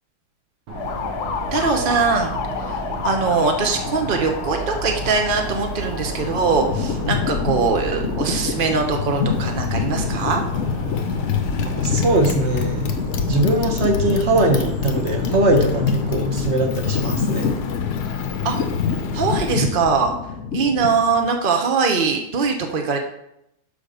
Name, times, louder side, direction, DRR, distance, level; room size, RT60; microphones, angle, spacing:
Motorcycle, 0.7-19.7, left 6 dB, 60° left, 1.1 m, -29 dB
sound 1, 0.7-16.4, right 3 dB, 85° right, 2.0 m, -33 dB
voice 1, 1.5-10.4 18.4-18.6 19.1-20.1 20.5-23.0, right 4 dB, 60° right, 3 dB, 0.5 m, -22 dB
sound 2, 5.9-21.4, left 6 dB, 80° left, 0.6 m, -27 dB
voice 2, 11.7-12.9 13.3-17.5, right 2 dB, 40° right, 3 dB, 1.0 m, -21 dB
6.8 x 5.2 x 6.5 m, 0.79 s
omnidirectional pair, 2.3 m